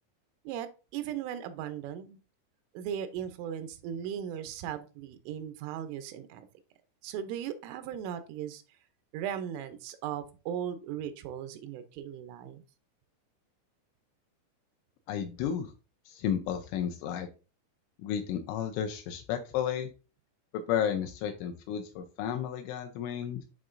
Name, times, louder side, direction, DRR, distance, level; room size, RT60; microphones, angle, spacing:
voice 1, 0.5-2.2 2.7-6.5 7.0-8.6 9.1-12.6, right 9 dB, 90° right, 10 dB, 3.2 m, -37 dB
voice 2, 15.1-15.7 16.1-17.3 18.0-19.9 20.5-23.5, left 9 dB, 80° left, 5 dB, 2.9 m, -32 dB
10.5 x 3.7 x 2.5 m, 0.33 s
omnidirectional pair, 5.5 m